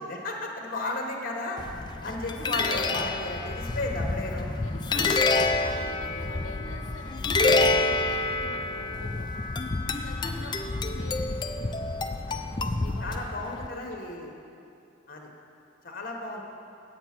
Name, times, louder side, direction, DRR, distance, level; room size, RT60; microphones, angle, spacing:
voice 1, 0.0-1.6 2.0-4.5 4.9-5.2 10.2-10.3 12.3-12.4 13.0-14.3 15.1-15.3 15.8-16.4, left 2 dB, 45° left, 1 dB, 1.3 m, -34 dB
sound 1, 1.6-13.7, left 3 dB, 20° left, 0.4 m, -28 dB
voice 2, 4.6-9.5 9.9-11.4 12.6-14.1, left 2 dB, 85° left, 2 dB, 0.7 m, -46 dB
9.0 x 8.1 x 6.0 m, 2.6 s
head